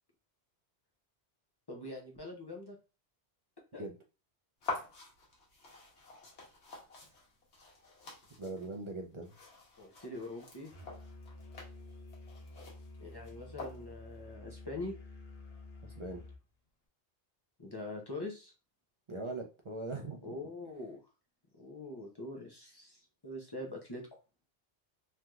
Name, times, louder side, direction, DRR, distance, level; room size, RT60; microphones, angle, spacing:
voice 1, 1.7-2.8 3.7-3.8 9.8-10.7 13.0-14.9 17.6-18.5 20.2-21.0 21.6-24.0, left 2 dB, 25° left, -1 dB, 0.6 m, -43 dB
sound 1, 4.6-14.2, left 3 dB, 85° left, 1.3 m, -47 dB
voice 2, 8.4-9.3 15.8-16.2 19.1-20.3, right 2 dB, 45° right, 2 dB, 0.4 m, -41 dB
Musical instrument, 10.7-16.4, left 2 dB, 70° left, 1.0 m, -50 dB
3.2 x 2.8 x 2.3 m, 0.32 s
omnidirectional pair, 1.1 m